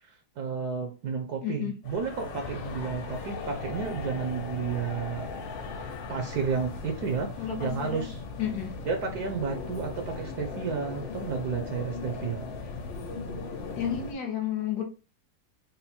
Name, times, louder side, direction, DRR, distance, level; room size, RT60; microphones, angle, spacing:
voice 1, 0.1-5.3 6.1-7.3 7.6-8.2 8.9-12.5, right 6 dB, 70° right, 4 dB, 1.1 m, -32 dB
voice 2, 1.4-1.8 7.4-8.1 8.4-8.7 13.8-14.8, left 9 dB, 65° left, 2 dB, 1.3 m, -31 dB
Ambiente - Jose Hernández, 1.8-14.1, left 4 dB, 90° left, 1.5 m, -38 dB
4.1 x 2.0 x 4.2 m, 0.33 s
omnidirectional pair, 2.0 m